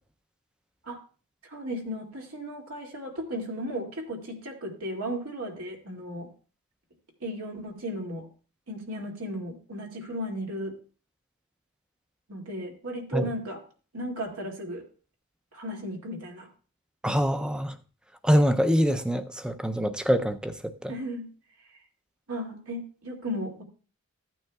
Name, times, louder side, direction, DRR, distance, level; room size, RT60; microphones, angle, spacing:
voice 1, 1.4-6.3 7.2-8.3 8.7-10.7 12.3-13.6 13.9-14.9 15.5-16.5 20.9-21.3 22.3-23.6, equal, 85° right, 2.2 m, -35 dB
voice 2, 17.0-17.7 18.2-20.5 20.8-20.9, equal, 5° right, 0.4 m, -24 dB
15.0 x 9.0 x 2.3 m
head